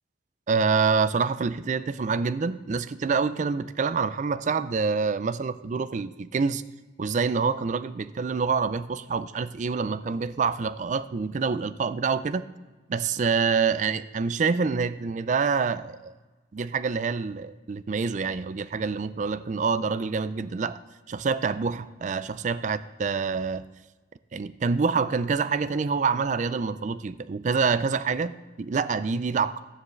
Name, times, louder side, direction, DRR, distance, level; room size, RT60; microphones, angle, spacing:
voice 1, 0.5-6.6 7.0-12.5 12.9-16.1 16.5-20.8 21.1-23.6 24.3-29.6, right 5 dB, 40° right, 14 dB, 0.4 m, -26 dB
13.0 x 9.3 x 3.2 m, 1.2 s
head